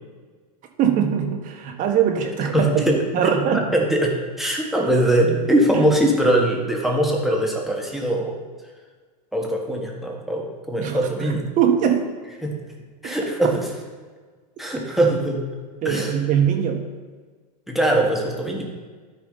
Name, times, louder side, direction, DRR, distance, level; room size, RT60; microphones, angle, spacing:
voice 1, 0.8-3.7 5.7-5.8 10.8-12.1 13.0-13.1 15.8-16.8, right 8 dB, 40° right, 4 dB, 1.3 m, -22 dB
voice 2, 2.5-3.0 3.5-8.4 9.3-11.4 12.4-12.6 13.0-13.5 14.6-15.5 15.9-16.1 17.7-18.6, right 1 dB, ahead, -1 dB, 1.6 m, -21 dB
12.5 x 4.9 x 4.0 m, 1.5 s
hypercardioid pair, 105°, 21 cm